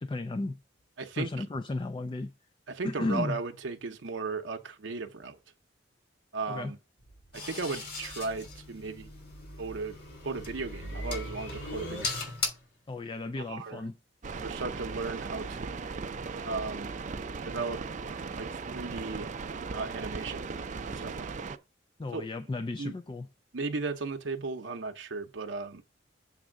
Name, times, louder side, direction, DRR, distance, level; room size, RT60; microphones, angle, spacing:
voice 1, 0.0-0.6 1.2-2.3 2.8-3.4 6.5-6.8 12.9-14.0 22.0-23.3, left 2 dB, 25° left, 0.4 m, -34 dB
voice 2, 1.0-1.3 2.7-5.4 6.3-6.8 7.3-9.1 9.6-10.0 10.2-12.1 13.3-13.8 14.4-15.7 16.4-16.9 17.4-17.9 18.3-19.3 19.7-20.5 20.9-21.3 22.1-22.2 22.8-22.9 23.5-25.8, right 4 dB, 75° right, 0.7 m, -36 dB
sound 1, 7.0-12.7, equal, 80° left, 2.6 m, -43 dB
sound 2, 7.3-12.5, left 4 dB, 55° left, 3.2 m, -39 dB
sound 3, 14.2-21.6, right 4 dB, 40° right, 0.5 m, -37 dB
7.3 x 3.5 x 6.3 m
head